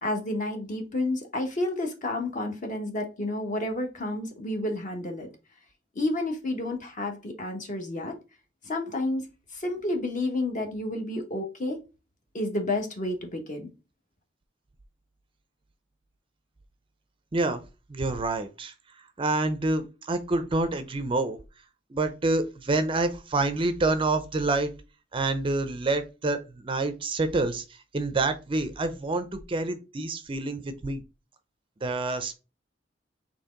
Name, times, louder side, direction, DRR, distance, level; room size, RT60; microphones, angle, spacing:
voice 1, 0.0-5.3 5.9-8.2 8.6-9.3 9.5-11.8 12.3-13.7, left 2 dB, 45° left, 1.0 m, -30 dB
voice 2, 17.3-17.6 17.9-18.7 19.2-21.4 21.9-24.7 25.1-31.0 31.8-32.4, right 2 dB, 30° right, 0.4 m, -27 dB
4.5 x 3.0 x 3.6 m
head